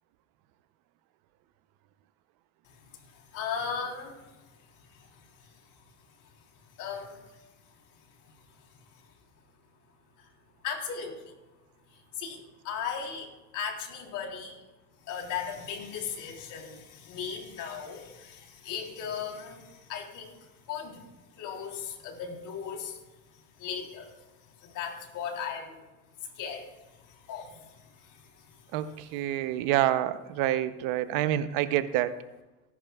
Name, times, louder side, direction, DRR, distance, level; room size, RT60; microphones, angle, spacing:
voice 1, 3.0-4.2 4.9-5.5 6.8-7.4 10.6-11.3 11.9-12.4 12.6-14.6 15.1-21.0 21.3-23.0 23.6-24.1 24.6-25.8 26.3-28.7, left 7 dB, 70° left, 1 dB, 3.7 m, -37 dB
voice 2, 28.7-32.2, right 13 dB, 80° right, 12 dB, 0.8 m, -27 dB
18.0 x 11.0 x 2.4 m, 1.0 s
supercardioid pair, 90°, 33 cm